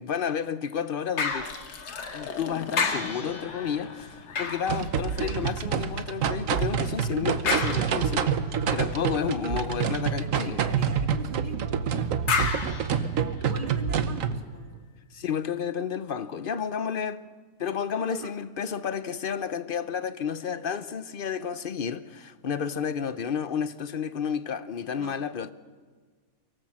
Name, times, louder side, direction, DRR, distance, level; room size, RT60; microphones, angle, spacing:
voice 1, 0.0-1.5 2.1-10.6 15.1-17.2 17.6-25.5, left 7 dB, 55° left, 0.6 m, -31 dB
sound 1, 1.2-2.4 2.7-5.6 7.5-8.4 12.3-13.7 14.3-14.4, left 4 dB, 70° left, 2.2 m, -32 dB
Liquid, 1.3-7.1, left 5 dB, 90° left, 2.1 m, -42 dB
sound 2, 4.7-14.4, right 7 dB, 60° right, 1.2 m, -27 dB
voice 2, 9.4-12.1 13.4-14.8 16.8-16.9 17.8-18.3 24.9-25.3, right 3 dB, 30° right, 2.1 m, -42 dB
24.0 x 17.5 x 7.5 m
omnidirectional pair, 1.7 m